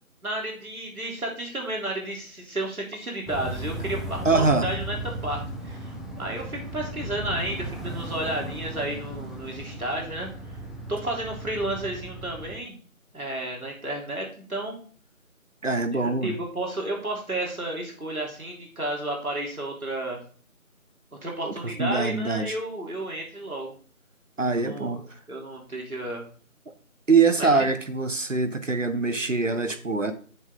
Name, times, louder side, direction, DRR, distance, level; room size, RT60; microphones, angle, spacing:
voice 1, 0.2-5.0 5.2-10.3 10.9-12.8 13.1-14.8 15.9-20.2 21.2-23.7 24.5-25.0 25.3-26.3 27.4-27.5, right 1 dB, 90° right, -1 dB, 3.5 m, -32 dB
sound 1, 3.3-12.6, right 1 dB, ahead, 0.7 m, -36 dB
voice 2, 4.2-4.7 15.6-16.3 21.4-21.5 21.8-22.6 24.4-25.0 27.1-30.1, right 4 dB, 60° right, 9 dB, 1.1 m, -23 dB
7.3 x 6.6 x 3.7 m, 0.43 s
figure-of-eight pair, 180°, 42 cm